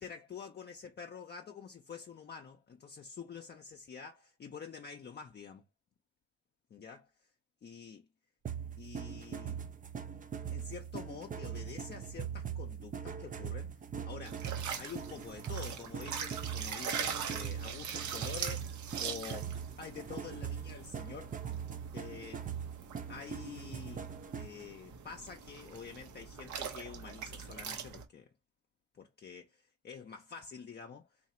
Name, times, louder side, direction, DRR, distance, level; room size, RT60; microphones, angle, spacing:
voice 1, 0.0-5.6 6.7-7.1 7.6-8.1 8.8-9.6 10.5-13.7 14.0-14.4 14.8-18.7 19.0-19.5 19.8-21.3 21.9-22.5 23.1-28.3 28.9-31.1, left 6 dB, 35° left, 0.5 m, -47 dB
sound 1, 8.4-24.6, right 8 dB, 25° right, 0.4 m, -41 dB
sound 2, 14.3-28.0, right 7 dB, 75° right, 0.9 m, -42 dB
2.7 x 2.5 x 4.2 m
cardioid pair, 90°, 30 cm